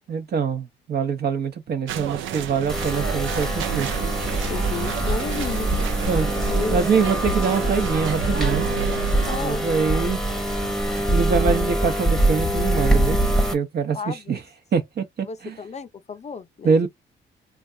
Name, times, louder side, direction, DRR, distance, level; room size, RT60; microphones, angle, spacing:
voice 1, 0.1-3.9 6.0-6.3 6.7-8.7 9.4-10.2 10.9-13.2 13.5-14.4 14.7-15.6 16.6-16.9, right 6 dB, 55° right, 0.9 m, -24 dB
sound 1, 1.9-9.4, right 9 dB, 75° right, 0.5 m, -30 dB
sound 2, 2.7-13.5, right 1 dB, 5° left, 0.9 m, -24 dB
voice 2, 4.5-5.7 6.4-6.8 9.3-9.9 13.9-14.4 15.3-16.9, left 5 dB, 35° left, 0.6 m, -33 dB
3.3 x 2.3 x 2.7 m
cardioid pair, 90°, 20 cm